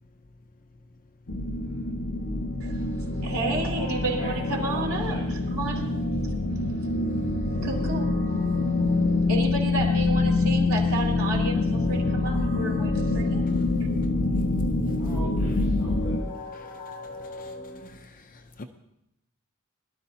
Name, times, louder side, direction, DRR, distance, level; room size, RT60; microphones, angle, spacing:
sound 1, 1.3-16.2, left 2 dB, 85° left, 1.2 m, -25 dB
sound 2, 2.1-17.9, left 2 dB, 20° left, 3.4 m, -43 dB
voice 1, 3.2-5.8 7.6-8.1 9.3-13.5, right 2 dB, 70° right, 3.1 m, -31 dB
voice 2, 4.2-5.3 15.0-16.2, right 1 dB, 15° right, 2.7 m, -42 dB
voice 3, 17.2-17.5 17.9-18.6, left 3 dB, 40° left, 0.6 m, -47 dB
21.5 x 12.5 x 2.8 m
head